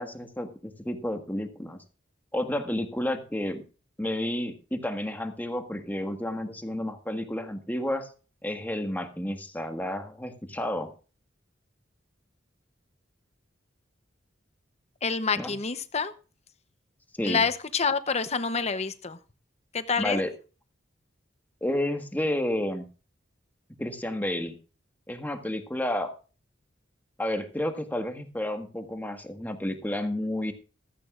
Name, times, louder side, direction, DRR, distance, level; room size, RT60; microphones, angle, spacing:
voice 1, 0.0-1.8 2.3-3.6 4.0-8.1 8.4-10.9 15.4-15.5 17.1-17.4 20.0-20.3 21.6-22.9 23.8-24.6 25.1-26.1 27.2-30.5, left 1 dB, 10° left, 5 dB, 1.6 m, -31 dB
voice 2, 15.0-16.1 17.2-19.2 19.7-20.2, left 5 dB, 35° left, 11 dB, 0.9 m, -27 dB
15.5 x 14.5 x 2.5 m, 0.35 s
head